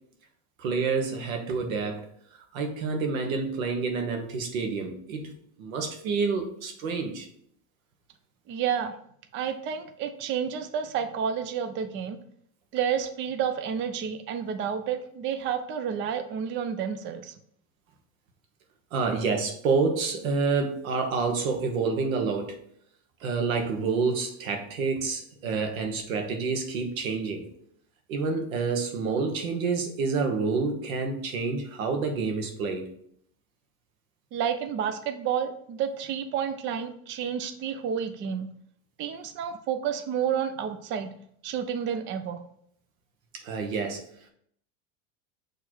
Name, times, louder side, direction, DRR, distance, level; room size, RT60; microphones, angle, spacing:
voice 1, 0.6-2.0 2.5-5.3 5.6-7.3 18.9-22.6 23.2-27.5 28.1-32.9 43.4-44.0, right 4 dB, 90° right, 4 dB, 1.5 m, -28 dB
voice 2, 8.5-8.9 9.3-12.2 12.7-17.3 34.3-38.5 39.0-41.1 41.4-42.4, right 8 dB, 30° right, 8 dB, 0.5 m, -30 dB
6.5 x 3.3 x 4.5 m, 0.67 s
supercardioid pair, 130°, 40 cm